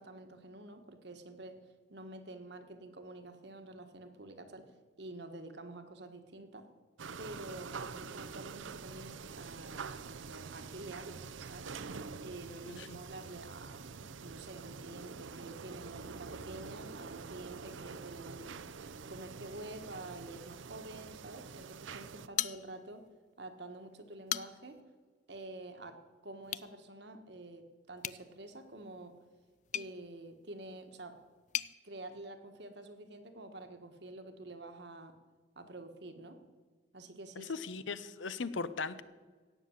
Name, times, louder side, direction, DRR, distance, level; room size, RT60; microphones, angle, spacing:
voice 1, 0.0-1.6 1.9-6.7 7.2-11.7 12.2-18.6 19.1-23.0 23.4-24.8 25.3-29.2 29.7-31.2 31.8-35.1 35.5-36.4 36.9-37.5, right 2 dB, 60° right, 7 dB, 1.5 m, -48 dB
sound 1, 7.0-22.3, right 5 dB, 80° right, 0.6 m, -46 dB
sound 2, 22.4-23.1 23.5-23.6 24.1-24.8 26.4-26.7 28.0-31.7, left 11 dB, 40° left, 0.4 m, -40 dB
voice 2, 37.4-39.0, left 4 dB, 75° left, 14 dB, 0.8 m, -38 dB
17.0 x 6.9 x 9.3 m, 1.4 s
head